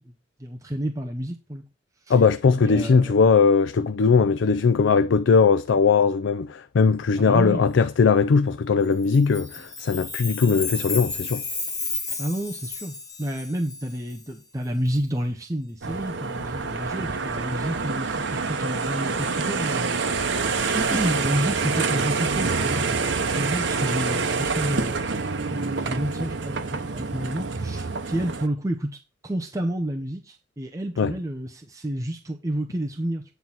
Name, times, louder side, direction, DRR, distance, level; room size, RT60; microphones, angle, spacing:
voice 1, 0.4-1.6 2.1-2.2 2.5-3.1 7.2-7.6 12.2-25.1 25.5-33.2, right 1 dB, 20° right, 0.8 m, -30 dB
voice 2, 2.1-11.4 31.0-31.1, left 5 dB, 85° left, 0.4 m, -19 dB
Chime, 9.0-14.2, left 4 dB, 20° left, 1.8 m, -32 dB
sound 1, 15.8-28.5, right 4 dB, 80° right, 0.9 m, -27 dB
9.3 x 4.0 x 5.9 m
head